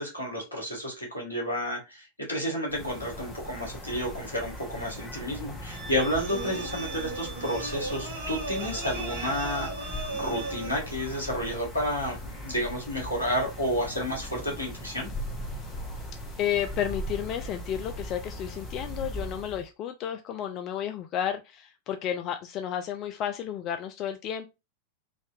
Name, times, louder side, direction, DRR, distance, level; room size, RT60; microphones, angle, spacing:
voice 1, 0.0-15.1, equal, 80° left, 1.5 m, -31 dB
sound 1, 2.7-19.7, equal, 20° left, 1.0 m, -39 dB
Wind instrument woodwind instrument, 5.7-10.6, right 4 dB, 35° right, 0.6 m, -44 dB
sound 2, 6.1-11.0, right 2 dB, 65° right, 0.9 m, -37 dB
voice 2, 16.4-24.5, left 9 dB, 35° left, 0.3 m, -32 dB
3.4 x 2.6 x 2.5 m
figure-of-eight pair, 90°, 0 cm